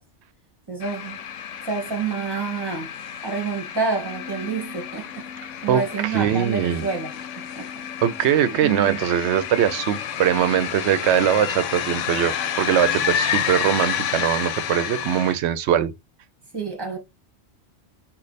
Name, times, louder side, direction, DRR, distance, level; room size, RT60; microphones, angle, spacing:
voice 1, 0.7-1.2 1.6-2.9 3.2-5.2 5.6-7.8 8.6-9.0 16.5-17.0, right 4 dB, 20° right, 1.3 m, -28 dB
sound 1, 0.8-15.3, left 9 dB, 80° left, 0.9 m, -30 dB
voice 2, 5.7-6.9 8.0-15.9, right 10 dB, 70° right, 0.8 m, -21 dB
3.2 x 2.4 x 4.0 m
omnidirectional pair, 1.2 m